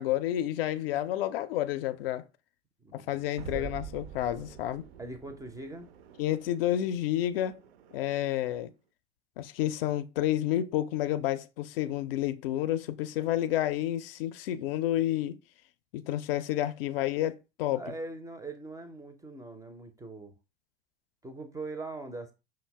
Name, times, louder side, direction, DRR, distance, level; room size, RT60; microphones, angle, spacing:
voice 1, 0.0-2.2 2.9-4.8 6.2-7.6 7.9-8.7 9.4-15.4 15.9-17.8, left 13 dB, 55° left, 0.4 m, -30 dB
voice 2, 2.8-3.2 3.5-3.7 5.0-5.9 17.7-20.3 21.2-22.3, right 2 dB, 10° right, 0.4 m, -41 dB
sound 1, 3.4-8.5, right 8 dB, 60° right, 0.5 m, -46 dB
5.5 x 2.1 x 3.2 m
figure-of-eight pair, 70°, 34 cm